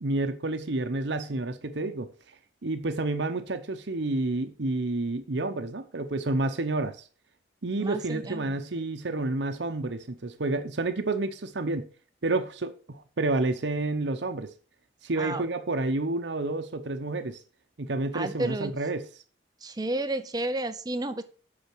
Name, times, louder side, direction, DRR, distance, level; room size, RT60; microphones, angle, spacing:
voice 1, 0.0-2.1 2.6-7.0 7.6-11.9 12.2-14.5 15.0-17.4 17.8-19.1, right 2 dB, 70° right, 0.8 m, -29 dB
voice 2, 7.8-8.6 15.2-15.5 18.1-18.7 19.6-21.2, right 2 dB, 20° right, 0.6 m, -31 dB
8.6 x 5.7 x 6.1 m
head